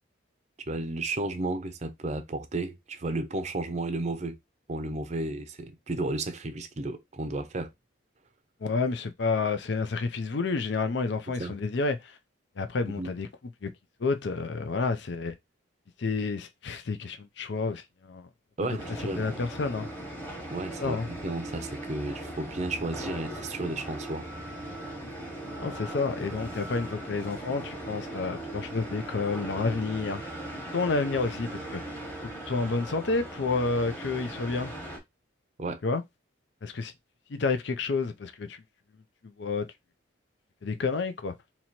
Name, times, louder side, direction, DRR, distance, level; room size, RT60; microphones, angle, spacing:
voice 1, 0.7-4.4 4.7-7.7 11.4-11.5 13.0-13.1 18.6-19.2 20.5-24.3 35.6-35.8, right 2 dB, 35° right, 0.5 m, -33 dB
voice 2, 8.6-12.1 12.6-13.3 13.6-13.7 14.0-15.3 16.0-18.3 18.6-18.7 19.0-19.9 20.8-21.1 25.6-30.2 30.7-31.8 32.4-34.7 35.8-36.0 36.6-36.9 37.3-38.6 39.4-39.7 40.6-41.3, left 4 dB, 60° left, 0.5 m, -29 dB
sound 1, 18.8-35.0, right 1 dB, 10° left, 1.2 m, -39 dB
2.9 x 2.8 x 4.2 m
head